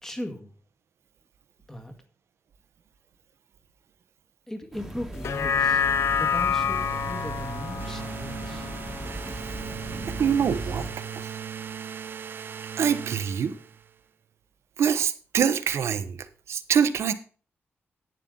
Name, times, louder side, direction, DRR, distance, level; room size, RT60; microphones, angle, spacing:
voice 1, 0.0-0.5 1.7-1.9 4.5-5.9 6.1-8.7, left 1 dB, 10° left, 5 dB, 1.8 m, -38 dB
sound 1, 4.7-10.9, right 1 dB, 5° right, 1.7 m, -38 dB
sound 2, 5.1-9.7 10.1-10.2, left 7 dB, 70° left, 0.6 m, -28 dB
sound 3, 5.7-14.0, right 8 dB, 50° right, 0.5 m, -38 dB
voice 2, 10.2-10.9 11.1-11.3 12.8-13.6 14.8-17.1, right 7 dB, 75° right, 12 dB, 1.0 m, -25 dB
11.5 x 9.0 x 3.9 m, 0.39 s
wide cardioid pair, 140°, 5 cm